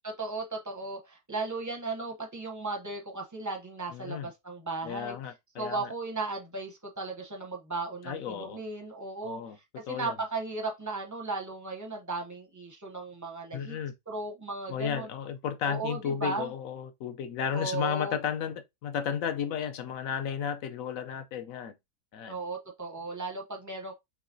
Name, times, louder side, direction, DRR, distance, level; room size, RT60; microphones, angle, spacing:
voice 1, 0.0-5.2 5.6-9.4 9.7-13.8 14.1-15.1 15.6-16.5 17.5-18.2 22.3-23.9, right 3 dB, 20° right, 0.5 m, -36 dB
voice 2, 3.9-4.3 4.8-5.9 8.0-8.6 9.2-9.6 9.9-10.1 13.5-13.9 14.7-21.7 22.1-22.4, left 8 dB, 70° left, 0.9 m, -33 dB
4.8 x 3.1 x 2.6 m
omnidirectional pair, 1.6 m